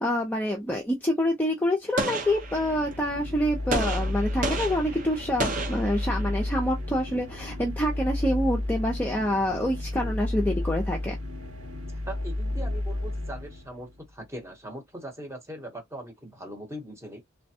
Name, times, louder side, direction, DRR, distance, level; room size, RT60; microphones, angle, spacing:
voice 1, 0.0-11.1, left 1 dB, 10° left, 0.5 m, -27 dB
Gunshot gunfire, 2.0-3.0 3.7-6.5, right 2 dB, 40° right, 0.7 m, -32 dB
sound 1, 2.2-14.1, left 1 dB, 80° right, 2.0 m, -32 dB
voice 2, 6.6-6.9 10.0-10.1 11.9-17.2, equal, 15° right, 0.9 m, -41 dB
3.3 x 2.1 x 2.7 m
head